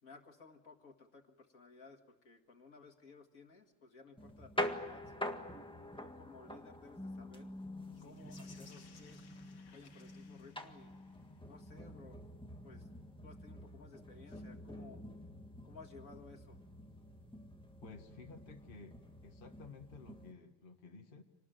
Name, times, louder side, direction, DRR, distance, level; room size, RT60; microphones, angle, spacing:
voice 1, 0.0-5.4 6.0-7.5 8.0-9.2 9.7-10.9 11.5-12.2 12.6-12.9 13.2-15.0 15.6-16.6, left 4 dB, 55° left, 3 dB, 2.3 m, -57 dB
sound 1, 4.2-20.3, left 1 dB, 5° left, 1.5 m, -46 dB
sound 2, 7.9-11.4 14.2-14.4, left 5 dB, 80° left, 2.2 m, -63 dB
voice 2, 17.8-21.2, left 4 dB, 30° left, 3 dB, 1.7 m, -54 dB
26.5 x 19.5 x 9.1 m, 1.1 s
omnidirectional pair, 1.8 m